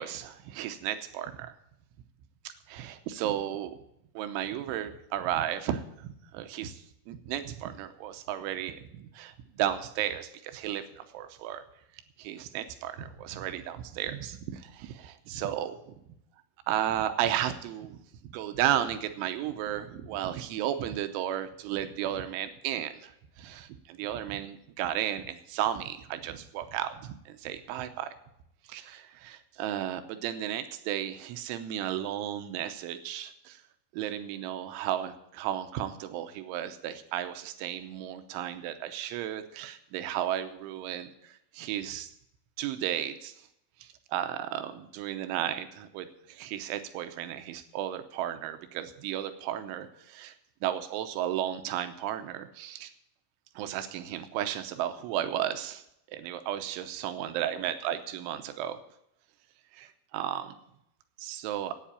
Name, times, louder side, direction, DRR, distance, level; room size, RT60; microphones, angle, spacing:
voice 1, 0.0-1.6 2.7-3.8 4.2-11.6 12.2-16.0 16.7-28.1 28.7-33.6 33.9-42.1 42.6-43.5 43.8-50.3 50.6-52.9 53.6-55.8 56.1-58.8 59.7-60.6 61.2-61.8, right 11 dB, 90° right, 9 dB, 3.2 m, -34 dB
10.0 x 9.0 x 8.5 m, 0.78 s
omnidirectional pair, 5.6 m